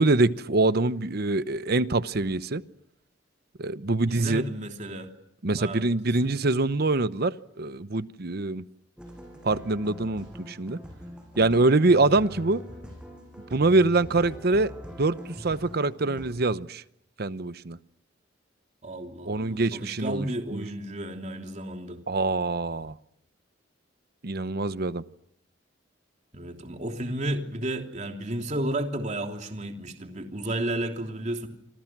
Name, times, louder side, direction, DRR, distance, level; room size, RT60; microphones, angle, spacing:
voice 1, 0.0-2.6 3.6-4.4 5.4-8.6 9.4-10.8 11.4-12.6 13.5-16.8 17.2-17.8 19.3-20.6 22.1-23.0 24.2-25.0, right 2 dB, 55° right, 0.9 m, -24 dB
voice 2, 4.1-5.1 5.6-6.3 18.8-22.0 26.3-31.5, right 1 dB, 40° right, 3.1 m, -33 dB
sound 1, 9.0-16.3, equal, 5° right, 7.4 m, -42 dB
28.0 x 26.5 x 6.1 m
head